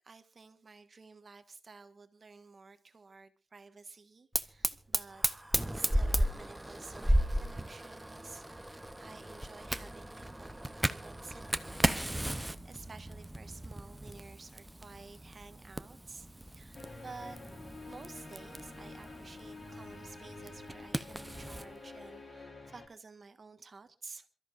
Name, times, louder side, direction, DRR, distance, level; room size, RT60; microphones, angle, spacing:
voice 1, 0.0-5.2 5.7-17.4 17.9-24.3, right 4 dB, 30° right, 1.4 m, -52 dB
Fire, 4.3-21.7, right 1 dB, 5° right, 0.7 m, -35 dB
sound 1, 16.7-22.9, left 3 dB, 30° left, 4.1 m, -49 dB
27.5 x 13.5 x 2.5 m
wide cardioid pair, 180°, 0 cm